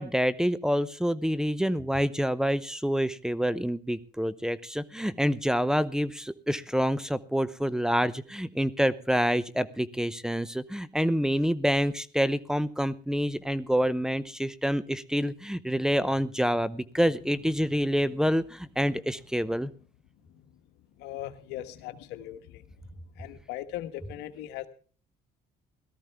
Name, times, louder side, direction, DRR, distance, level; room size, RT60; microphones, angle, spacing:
voice 1, 0.0-19.7, equal, 5° right, 0.7 m, -27 dB
voice 2, 21.0-22.6 23.1-24.7, left 13 dB, 90° left, 1.3 m, -39 dB
17.5 x 13.5 x 3.5 m
cardioid pair, 95°, 17 cm